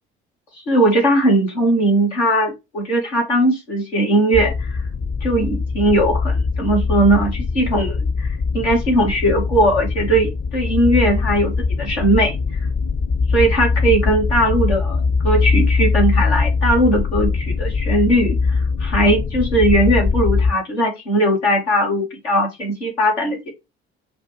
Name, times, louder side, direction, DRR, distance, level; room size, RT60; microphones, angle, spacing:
voice 1, 0.7-4.8 5.2-12.3 13.3-23.5, right 1 dB, 80° left, -1 dB, 1.1 m, -19 dB
sound 1, 4.3-20.5, left 4 dB, 30° left, 0.6 m, -21 dB
6.0 x 2.1 x 2.9 m, 0.23 s
figure-of-eight pair, 45°, 32 cm